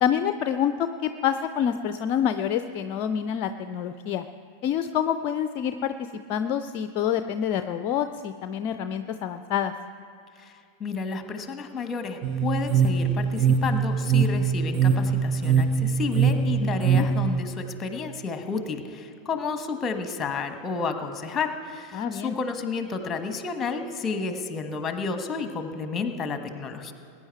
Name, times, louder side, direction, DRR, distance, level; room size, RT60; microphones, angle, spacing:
voice 1, 0.0-4.2 4.6-5.9 6.3-9.7 16.6-17.1 21.9-22.4, left 9 dB, 40° left, 10 dB, 0.5 m, -27 dB
voice 2, 10.8-26.9, left 5 dB, 20° left, 7 dB, 1.3 m, -31 dB
sound 1, 12.2-17.4, right 6 dB, 35° right, 0.8 m, -23 dB
21.0 x 9.8 x 4.6 m, 2.4 s
figure-of-eight pair, 90°, 0 cm